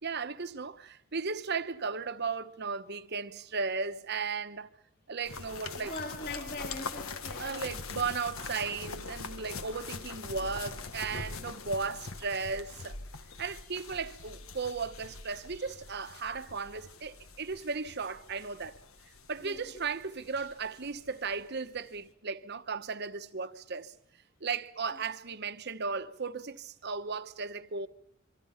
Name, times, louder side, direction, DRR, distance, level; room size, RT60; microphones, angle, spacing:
voice 1, 0.0-4.7 5.1-5.9 7.4-13.0 13.4-18.7 19.3-23.9 24.4-27.9, right 5 dB, 50° right, 1.1 m, -36 dB
sound 1, 5.2-21.4 21.7-21.8, left 4 dB, 80° left, 1.4 m, -43 dB
voice 2, 5.8-7.7 19.4-19.6, left 2 dB, 45° left, 3.3 m, -41 dB
26.5 x 24.5 x 5.8 m
head